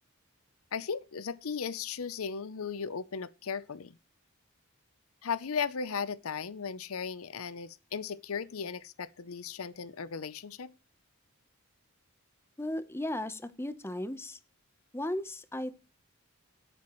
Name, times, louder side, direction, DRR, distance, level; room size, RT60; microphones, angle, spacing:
voice 1, 0.7-4.0 5.2-10.7, left 6 dB, 70° left, 0.6 m, -36 dB
voice 2, 12.6-14.4 14.9-15.8, left 1 dB, 10° left, 0.8 m, -36 dB
18.0 x 8.6 x 3.1 m
head